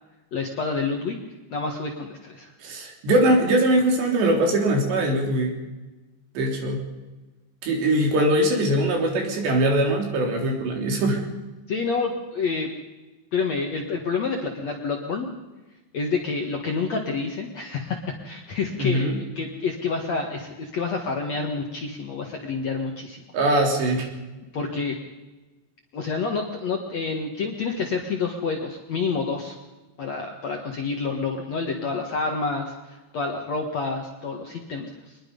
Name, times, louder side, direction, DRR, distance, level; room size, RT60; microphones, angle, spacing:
voice 1, 0.3-1.2 1.5-2.5 11.7-12.7 13.3-15.3 15.9-18.0 18.2-23.2 24.5-25.0 25.9-29.6 30.0-34.9, left 4 dB, 55° left, 2 dB, 2.1 m, -28 dB
voice 2, 2.6-5.5 6.4-6.8 7.6-11.2 18.8-19.2 23.3-24.1, right 1 dB, 70° right, 2 dB, 5.4 m, -21 dB
24.0 x 21.0 x 5.5 m, 1.1 s
omnidirectional pair, 5.2 m